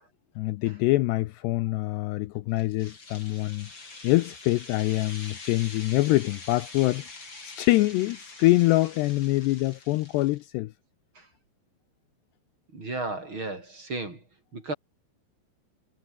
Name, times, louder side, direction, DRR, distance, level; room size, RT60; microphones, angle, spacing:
voice 1, 0.4-3.7 4.0-7.1 7.4-10.7, left 19 dB, 80° left, 2.6 m, -25 dB
sound 1, 2.6-10.4, left 3 dB, 25° left, 5.8 m, -45 dB
voice 2, 12.7-14.2 14.5-14.7, right 2 dB, 25° right, 5.6 m, -34 dB
omnidirectional pair, 5.2 m